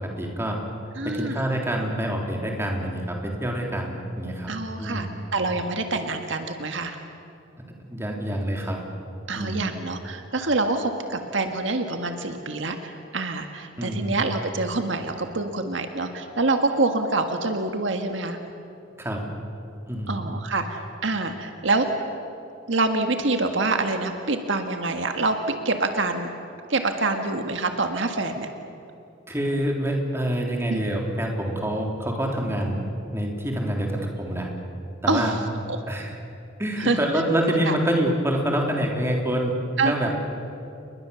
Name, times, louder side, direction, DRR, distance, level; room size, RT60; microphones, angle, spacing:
voice 1, 0.2-0.6 1.0-4.5 4.8-5.1 7.9-8.8 9.3-9.6 13.8-14.1 19.0-19.2 19.9-20.2 29.3-32.8 33.1-34.5 35.0-35.3 35.9-36.1 36.6-39.5 39.8-40.1, right 1 dB, 15° right, 0 dB, 3.5 m, -26 dB
voice 2, 1.0-1.4 4.5-7.0 9.3-18.4 20.1-21.9 22.7-26.3 26.7-28.5 30.7-30.8 35.1-35.4 35.7-35.8 36.8-37.0 37.5-37.8 39.8-39.9, right 3 dB, 70° right, 5 dB, 1.7 m, -26 dB
29.5 x 21.5 x 7.0 m, 2.7 s
head